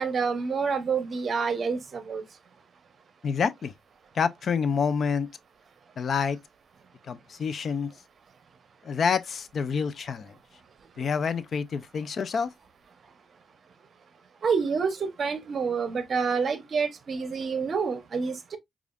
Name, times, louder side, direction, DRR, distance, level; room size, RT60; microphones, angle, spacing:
voice 1, 0.0-2.2 14.4-18.6, right 5 dB, 45° right, 0.8 m, -28 dB
voice 2, 3.2-3.7 4.1-5.3 6.0-6.4 7.1-7.9 8.8-10.3 11.0-12.5, left 6 dB, 50° left, 0.4 m, -27 dB
5.0 x 2.4 x 2.4 m
cardioid pair, 90°, 0 cm